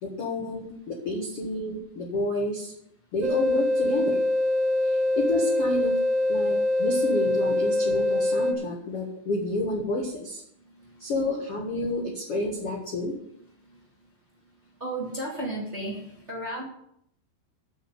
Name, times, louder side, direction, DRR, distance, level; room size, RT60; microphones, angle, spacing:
voice 1, 0.0-2.7 3.1-4.2 4.8-6.0 6.3-10.4 11.0-13.1, left 1 dB, 55° left, -1 dB, 1.6 m, -30 dB
sound 1, 3.2-8.5, left 1 dB, 85° right, 1.6 m, -24 dB
voice 2, 14.8-16.0 16.3-16.6, right 1 dB, 20° right, -4 dB, 2.2 m, -32 dB
8.2 x 7.6 x 8.6 m, 0.71 s
omnidirectional pair, 5.3 m